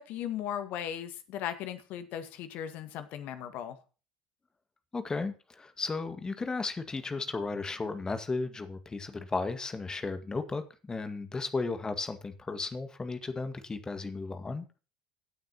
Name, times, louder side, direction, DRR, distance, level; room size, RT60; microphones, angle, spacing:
voice 1, 0.0-3.8, left 10 dB, 55° left, 10 dB, 1.8 m, -37 dB
voice 2, 4.9-14.7, left 3 dB, 20° left, 9 dB, 2.0 m, -35 dB
16.0 x 9.0 x 3.0 m, 0.34 s
figure-of-eight pair, 65°, 3 cm